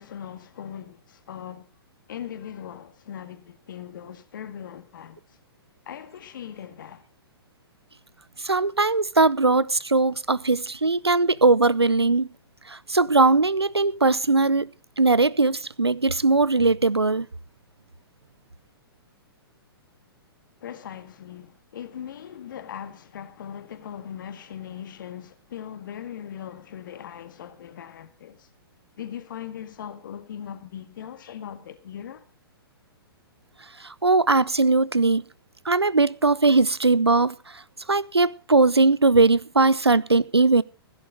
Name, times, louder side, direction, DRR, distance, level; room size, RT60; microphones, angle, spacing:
voice 1, 0.0-1.7 2.1-5.4 5.9-7.1 20.6-28.5 29.0-32.3, left 9 dB, 55° left, 1.9 m, -39 dB
voice 2, 8.4-12.3 12.7-14.7 15.0-17.3 33.8-35.2 35.6-37.6 37.9-40.6, right 3 dB, 85° right, 0.6 m, -20 dB
16.5 x 10.5 x 5.0 m
figure-of-eight pair, 115°, 13 cm